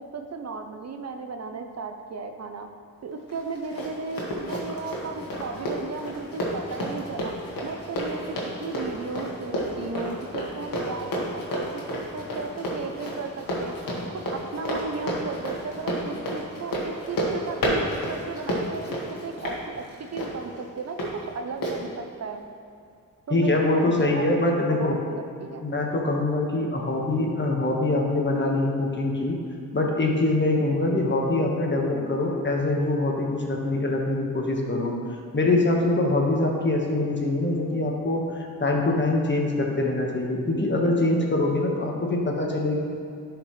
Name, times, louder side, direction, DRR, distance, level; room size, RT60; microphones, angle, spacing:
voice 1, 0.0-2.7 3.0-7.3 7.6-13.7 14.1-22.4 23.3-25.6 31.9-32.2, right 4 dB, 50° right, 6 dB, 0.6 m, -35 dB
Run, 3.3-21.1 21.6-21.8, equal, 80° left, 1.7 m, -31 dB
voice 2, 23.3-25.0 25.6-29.3 29.7-34.9 35.3-42.8, left 2 dB, 35° left, 0 dB, 1.4 m, -24 dB
11.0 x 5.1 x 3.2 m, 2.4 s
cardioid pair, 70°, 34 cm